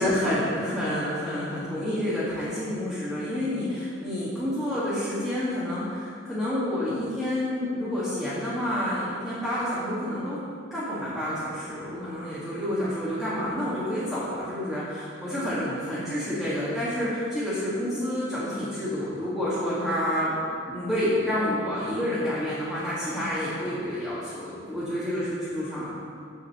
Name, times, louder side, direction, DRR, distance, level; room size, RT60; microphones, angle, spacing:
voice 1, 0.0-10.4 10.7-20.4 20.7-25.9, left 1 dB, ahead, -13 dB, 1.9 m, -29 dB
7.2 x 5.8 x 7.1 m, 2.3 s
head